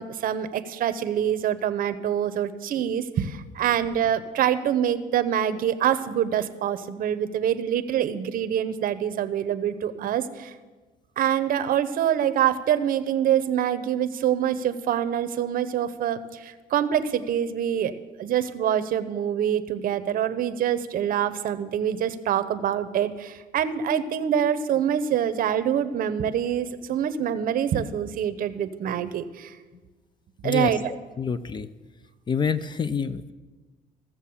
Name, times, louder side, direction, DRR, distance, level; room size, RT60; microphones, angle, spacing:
voice 1, 0.0-10.5 11.2-17.9 18.2-29.6 30.4-30.8, right 9 dB, 55° right, 12 dB, 0.7 m, -25 dB
voice 2, 30.4-31.7 32.3-33.3, left 6 dB, 25° left, 15 dB, 0.5 m, -28 dB
14.5 x 7.2 x 6.9 m, 1.3 s
cardioid pair, 110°, 17 cm